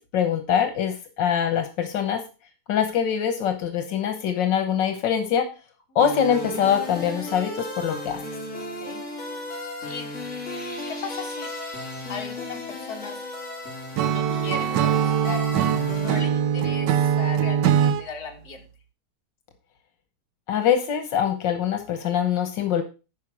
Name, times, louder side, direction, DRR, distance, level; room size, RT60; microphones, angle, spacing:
voice 1, 0.1-2.2 2.7-5.5 6.0-8.2 20.5-22.8, left 8 dB, 85° left, 7 dB, 1.8 m, -23 dB
sound 1, 6.0-16.2, left 1 dB, 45° left, 2.4 m, -35 dB
voice 2, 10.9-11.5 12.1-13.2 13.9-18.7, left 5 dB, 60° left, 2 dB, 2.1 m, -37 dB
Acoustic guitar / Strum, 14.0-18.1, right 9 dB, 80° right, 1.3 m, -22 dB
11.0 x 4.9 x 4.8 m, 0.31 s
omnidirectional pair, 1.9 m